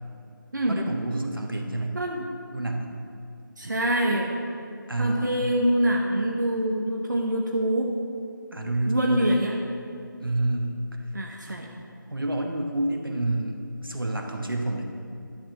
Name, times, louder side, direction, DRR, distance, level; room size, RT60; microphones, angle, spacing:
voice 1, 0.7-2.0 2.5-3.0 4.9-5.5 8.5-9.3 10.2-10.8 11.5-11.6 12.1-14.8, right 2 dB, 80° right, 2 dB, 1.3 m, -29 dB
voice 2, 1.9-2.4 3.6-4.3 5.0-7.9 8.9-9.5 11.1-11.7, right 1 dB, 60° right, -1 dB, 0.9 m, -25 dB
11.5 x 4.3 x 6.7 m, 2.5 s
figure-of-eight pair, 160°, 11 cm